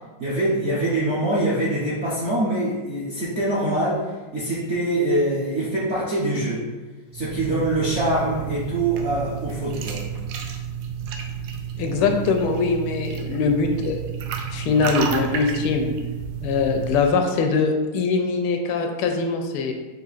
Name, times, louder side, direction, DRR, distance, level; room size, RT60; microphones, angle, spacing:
voice 1, 0.2-4.0 4.3-6.7 7.1-10.0, right 1 dB, 55° right, -9 dB, 0.7 m, -24 dB
sound 1, 7.1-17.1, right 7 dB, 75° right, 1.3 m, -31 dB
voice 2, 11.8-14.0 14.5-15.9 16.4-19.7, left 4 dB, 80° left, 4 dB, 1.4 m, -22 dB
4.9 x 2.6 x 4.0 m, 1.2 s
omnidirectional pair, 2.3 m